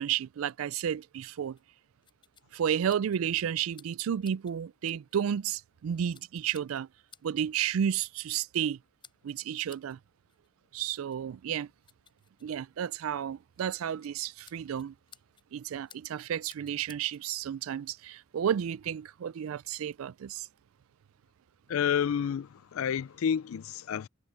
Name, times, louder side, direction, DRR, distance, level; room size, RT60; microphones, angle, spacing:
voice 1, 0.0-1.6 2.5-6.9 7.2-8.8 9.2-10.0 10.7-11.7 12.4-14.9 15.5-20.4, right 9 dB, 85° right, 0.4 m, -32 dB
sound 1, 1.6-17.3, left 6 dB, 25° left, 6.3 m, -61 dB
voice 2, 21.7-24.1, left 8 dB, 85° left, 0.4 m, -30 dB
head